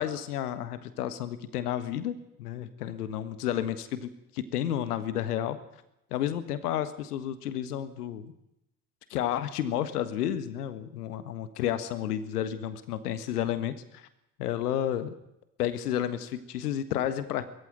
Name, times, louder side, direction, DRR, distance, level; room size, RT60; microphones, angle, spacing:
voice 1, 0.0-5.6 6.1-8.3 9.1-14.1 14.4-15.1 15.6-17.4, left 11 dB, 75° left, 12 dB, 1.6 m, -31 dB
21.5 x 14.5 x 9.4 m, 0.84 s
figure-of-eight pair, 65°, 46 cm